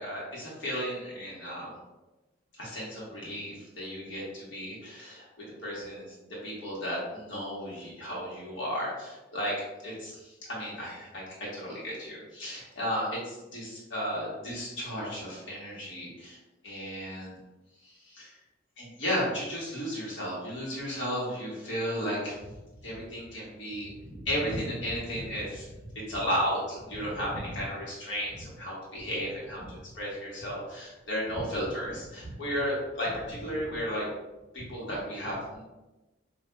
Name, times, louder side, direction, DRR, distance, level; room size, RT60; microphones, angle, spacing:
voice 1, 0.0-1.8 2.6-9.6 9.8-16.4 16.6-17.4 17.8-18.3 18.8-22.5 22.8-34.1 34.5-35.6, equal, 65° left, -6 dB, 1.3 m, -34 dB
5.3 x 2.5 x 2.3 m, 1.1 s
head